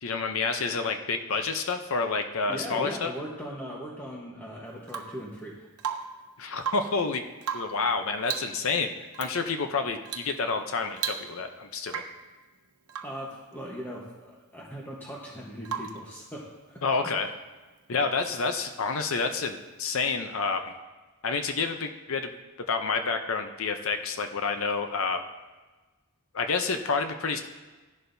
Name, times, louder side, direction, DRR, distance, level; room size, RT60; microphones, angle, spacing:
voice 1, 0.0-3.1 6.4-7.2 7.5-8.9 9.2-12.0 16.8-17.3 17.9-20.7 21.2-22.3 22.7-25.2 26.3-27.4, left 4 dB, 65° left, 7 dB, 0.6 m, -29 dB
voice 2, 2.5-5.7 13.0-17.1, equal, 10° left, -4 dB, 1.1 m, -39 dB
Rain / Water tap faucet / Drip, 4.9-5.3 5.8-6.3 6.6-7.0 7.4-7.9 8.2-8.6 9.1-9.3 10.1-10.4 10.6-10.7 11.0-11.5 11.9-12.3 12.9-13.2 15.7-16.1 18.0-18.1, right 7 dB, 85° right, 0.8 m, -35 dB
14.5 x 11.0 x 2.7 m, 1.2 s
head